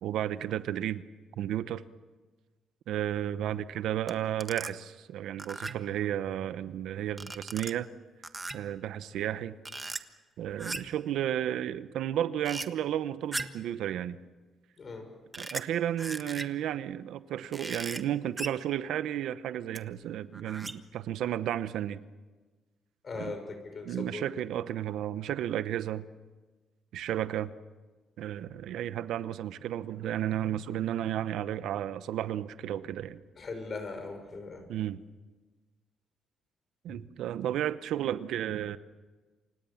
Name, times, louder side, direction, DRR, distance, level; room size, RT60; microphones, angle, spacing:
voice 1, 0.0-1.0 1.4-1.8 2.9-7.9 8.5-9.5 10.4-14.2 15.4-22.0 23.2-23.4 23.8-26.0 26.9-27.5 28.2-33.2 34.7-35.0 36.8-38.8, right 11 dB, 80° right, 13 dB, 0.9 m, -33 dB
sound 1, 4.1-4.2 4.4-4.7 5.4-5.9 7.2-7.7 8.2-8.8 9.7-10.0 10.6-11.0 12.5-12.7 13.3-13.7 15.3-15.6 16.0-16.6 17.5-18.0 18.4-18.7 19.8-19.9 20.3-20.9, right 2 dB, 20° right, 1.4 m, -38 dB
voice 2, 23.0-24.2 33.4-34.6, left 4 dB, 45° left, 6 dB, 6.4 m, -39 dB
29.0 x 26.5 x 7.3 m, 1.3 s
cardioid pair, 90°, 0 cm